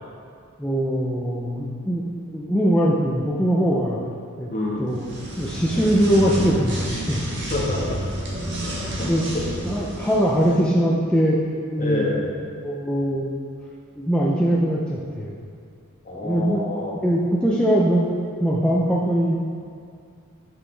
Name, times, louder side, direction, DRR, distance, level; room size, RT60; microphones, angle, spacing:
voice 1, 0.6-4.0 4.4-4.5 4.8-5.0 5.4-7.5 9.1-9.2 9.6-11.4 11.7-12.1 12.4-13.3 14.0-15.4 16.2-16.6 17.0-18.0 18.4-19.4, equal, 5° left, -5 dB, 0.5 m, -21 dB
voice 2, 4.5-4.9 7.4-8.0 8.4-9.6 11.8-12.3 16.0-16.9, left 2 dB, 40° left, -4 dB, 1.4 m, -28 dB
sound 1, 4.9-10.6, right 1 dB, 55° right, 1.5 m, -30 dB
9.2 x 6.3 x 3.3 m, 2.3 s
head